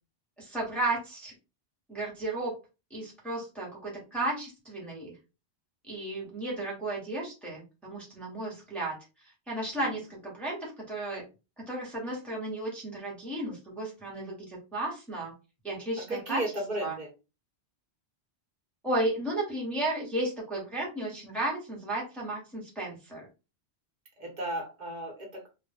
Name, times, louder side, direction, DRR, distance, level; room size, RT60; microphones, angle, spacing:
voice 1, 0.4-1.3 1.9-2.5 2.9-5.1 5.9-9.0 9.5-11.3 11.6-15.3 15.6-16.4 16.8-17.0 18.8-23.3, right 2 dB, ahead, -4 dB, 0.9 m, -34 dB
voice 2, 16.1-17.1 24.2-25.5, right 1 dB, 45° right, 0 dB, 1.0 m, -34 dB
2.2 x 2.1 x 3.2 m, 0.29 s
omnidirectional pair, 1.1 m